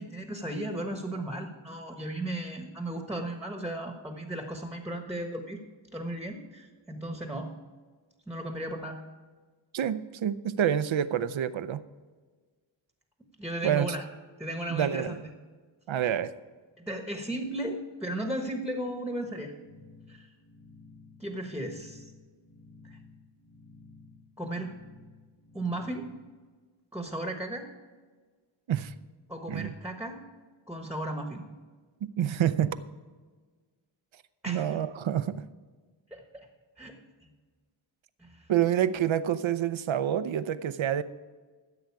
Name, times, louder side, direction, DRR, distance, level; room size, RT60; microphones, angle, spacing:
voice 1, 0.0-5.6 5.9-7.5 8.3-9.0 13.4-14.0 14.4-15.2 16.9-19.5 20.1-20.3 21.2-22.1 22.8-23.0 24.4-24.7 25.5-26.1 26.9-27.7 29.3-30.2 30.7-31.4 34.4-34.8 36.1-36.5 36.8-37.3 38.2-38.5, right 1 dB, 5° right, 4 dB, 1.2 m, -35 dB
voice 2, 9.7-11.8 13.6-13.9 14.7-15.2 15.9-16.3 28.7-28.9 29.5-29.7 32.0-32.8 34.5-35.5 38.5-41.0, right 10 dB, 70° right, 13 dB, 0.7 m, -27 dB
sound 1, 19.6-26.4, left 3 dB, 30° left, 1.3 m, -54 dB
14.5 x 7.9 x 4.8 m, 1.4 s
wide cardioid pair, 120°, 48 cm